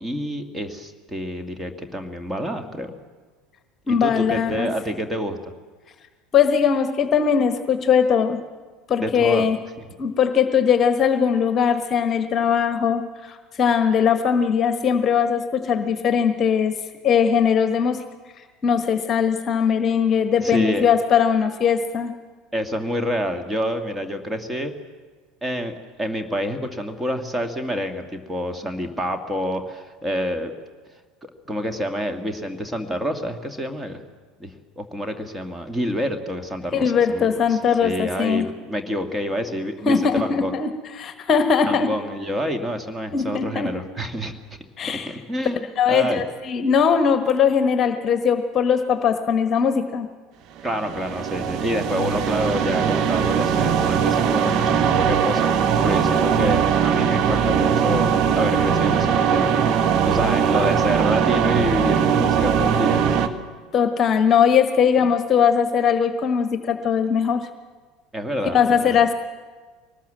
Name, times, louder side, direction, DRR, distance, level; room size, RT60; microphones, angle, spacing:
voice 1, 0.0-2.9 3.9-5.4 9.0-9.5 20.4-20.9 22.5-24.7 25.4-30.5 31.2-34.0 34.4-40.5 41.7-44.3 44.9-46.2 50.6-55.5 55.8-59.5 60.1-63.3 68.1-69.0, equal, 15° right, 6 dB, 2.3 m, -28 dB
voice 2, 3.9-4.7 6.3-8.4 8.9-9.6 10.0-16.7 17.0-18.0 18.6-22.1 36.7-38.5 39.9-40.7 41.0-41.9 43.1-43.7 44.8-45.1 45.8-50.1 63.7-67.5 68.5-69.1, left 7 dB, 35° left, 9 dB, 1.3 m, -20 dB
sound 1, 50.6-63.3, right 7 dB, 45° right, 1.3 m, -20 dB
22.5 x 19.5 x 7.6 m, 1.5 s
figure-of-eight pair, 70°, 0 cm